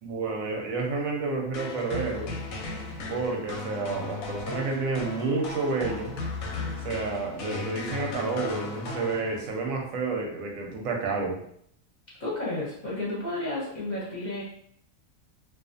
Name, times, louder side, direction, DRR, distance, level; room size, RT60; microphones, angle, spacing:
voice 1, 0.0-2.3 3.1-6.1 6.8-11.4, right 3 dB, 90° right, 1 dB, 1.0 m, -30 dB
sound 1, 1.5-9.7, left 3 dB, 90° left, 1.0 m, -36 dB
voice 2, 12.2-14.4, left 2 dB, 45° left, -7 dB, 0.7 m, -32 dB
2.4 x 2.4 x 2.5 m, 0.68 s
omnidirectional pair, 1.4 m